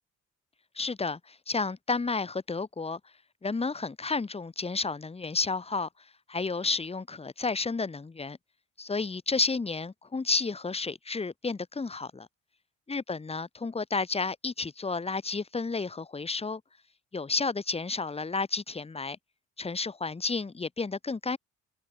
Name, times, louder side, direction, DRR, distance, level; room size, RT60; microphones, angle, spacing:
voice 1, 0.7-3.0 3.4-5.9 6.3-8.4 8.8-12.3 12.9-16.6 17.1-19.2 19.6-21.4, left 4 dB, 20° left, 1.3 m, -31 dB
cardioid pair, 90°, 30 cm